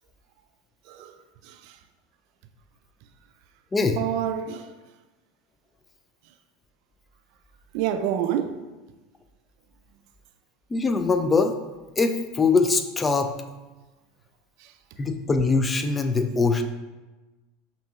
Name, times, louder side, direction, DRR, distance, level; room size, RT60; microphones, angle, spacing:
voice 1, 1.4-1.8 4.0-4.7 7.7-8.6 14.6-14.7, right 10 dB, 60° right, 0.3 m, -28 dB
voice 2, 10.7-11.6 12.0-13.3 15.0-16.6, left 4 dB, 20° left, 0.4 m, -22 dB
5.4 x 2.7 x 2.4 m
hypercardioid pair, 90°, 0 cm